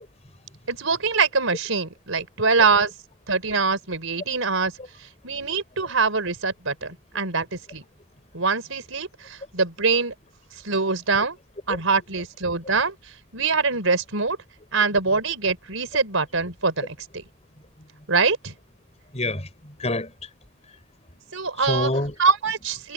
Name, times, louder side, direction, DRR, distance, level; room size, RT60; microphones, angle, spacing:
voice 1, 0.7-2.9 3.3-4.7 5.2-7.8 8.3-10.1 10.6-11.4 11.7-13.0 13.3-14.4 14.7-17.2 18.1-18.5 21.3-21.9 22.2-22.9, right 4 dB, 75° right, 4.3 m, -23 dB
voice 2, 19.1-20.3 21.1-21.2 21.5-22.1, left 2 dB, 30° left, 5.5 m, -28 dB
head